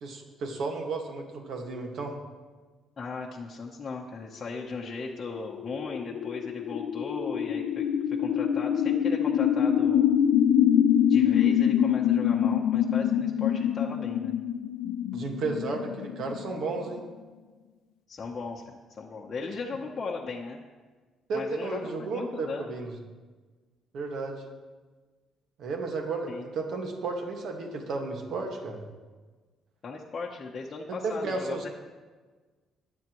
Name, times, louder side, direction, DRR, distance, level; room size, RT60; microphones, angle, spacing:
voice 1, 0.0-2.2 15.1-17.0 21.3-22.9 23.9-24.4 25.6-28.8 30.9-31.7, right 3 dB, 60° right, 2 dB, 1.7 m, -33 dB
voice 2, 3.0-7.8 8.2-10.1 11.1-14.3 18.1-20.6 21.3-22.7 26.3-26.5 29.8-31.5, left 4 dB, 30° left, -3 dB, 0.9 m, -37 dB
sound 1, 4.9-17.0, left 9 dB, 85° left, 0.5 m, -25 dB
21.5 x 8.7 x 3.1 m, 1.3 s
cardioid pair, 160°, 0 cm